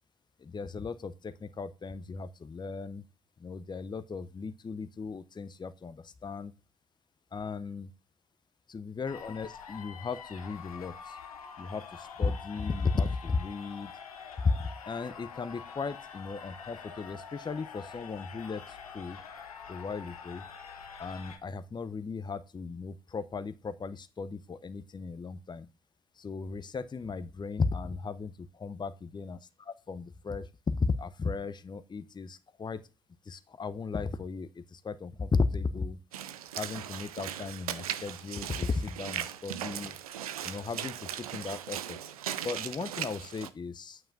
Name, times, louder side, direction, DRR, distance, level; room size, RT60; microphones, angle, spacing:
voice 1, 0.4-3.0 3.4-6.5 7.3-7.9 8.7-11.2 11.6-13.9 14.4-19.2 19.7-20.5 21.0-25.7 26.2-32.8 33.2-36.0 36.6-39.9 40.4-42.0 42.4-44.0, left 4 dB, 25° left, 13 dB, 0.7 m, -35 dB
sound 1, 9.1-21.4, left 6 dB, 85° left, 0.7 m, -46 dB
Walk footsteps / Splash splatter, 36.1-43.5, right 10 dB, 85° right, 0.4 m, -38 dB
8.9 x 7.6 x 2.6 m, 0.31 s
figure-of-eight pair, 45°, 18 cm